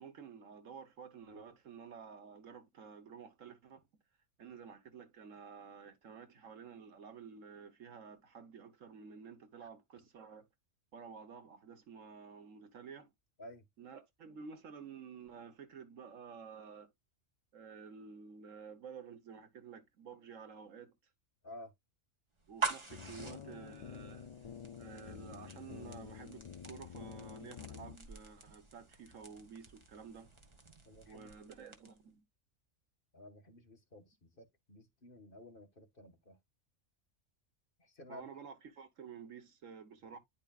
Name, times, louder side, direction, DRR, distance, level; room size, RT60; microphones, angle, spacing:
voice 1, 0.0-3.9 4.4-10.5 10.9-13.1 13.8-16.9 17.5-20.9 22.5-24.3 24.8-30.3 31.1-32.2 38.1-40.2, right 6 dB, 80° right, 1.6 m, -51 dB
sound 1, 22.4-32.1, right 5 dB, 25° right, 1.4 m, -46 dB
sound 2, 22.9-28.0, left 7 dB, 65° left, 0.3 m, -49 dB
voice 2, 30.9-31.3 33.1-36.4 37.8-38.3, left 1 dB, 45° left, 1.9 m, -53 dB
10.5 x 5.0 x 2.4 m
omnidirectional pair, 1.3 m